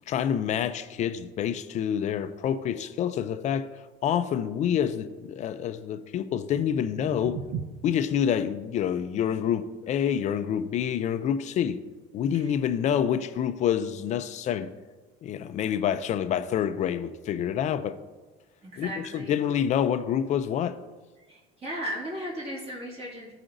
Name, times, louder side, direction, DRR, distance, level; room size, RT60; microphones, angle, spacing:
voice 1, 0.1-3.7 4.0-7.4 7.8-11.8 12.1-14.7 15.2-18.0 18.8-18.9 19.3-20.8, left 9 dB, 40° left, 0.4 m, -27 dB
sound 1, 6.4-12.5, right 7 dB, 55° right, 0.5 m, -42 dB
voice 2, 18.6-19.4 21.3-23.3, equal, 35° right, 2.3 m, -36 dB
15.0 x 4.9 x 2.6 m
cardioid pair, 140°, 18 cm